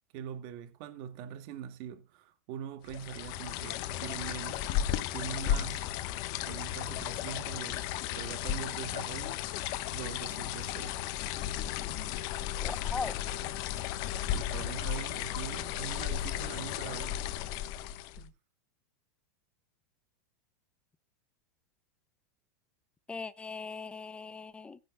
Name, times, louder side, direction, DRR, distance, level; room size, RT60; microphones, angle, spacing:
voice 1, 0.1-4.7 5.1-5.9 6.4-11.0 13.4-13.6 14.3-17.2 18.2-18.3, right 9 dB, 50° right, 1.9 m, -43 dB
sound 1, 2.9-18.3, left 11 dB, 50° left, 1.1 m, -34 dB
voice 2, 12.6-13.2 23.1-24.8, left 4 dB, 10° left, 0.8 m, -39 dB
18.5 x 10.0 x 2.2 m
supercardioid pair, 135°, 9 cm